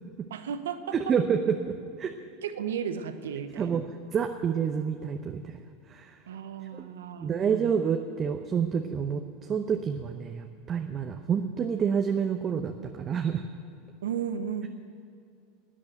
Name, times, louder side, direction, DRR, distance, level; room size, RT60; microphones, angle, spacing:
voice 1, 0.3-1.1 2.4-3.9 6.3-7.7 14.0-14.7, right 8 dB, 80° right, 10 dB, 0.9 m, -34 dB
voice 2, 0.9-2.1 3.6-3.8 4.1-5.6 5.9-6.2 6.7-6.9 7.2-9.2 9.5-13.4, right 7 dB, 35° right, 5 dB, 0.8 m, -28 dB
12.5 x 8.6 x 9.1 m, 2.4 s
hypercardioid pair, 90°, 0 cm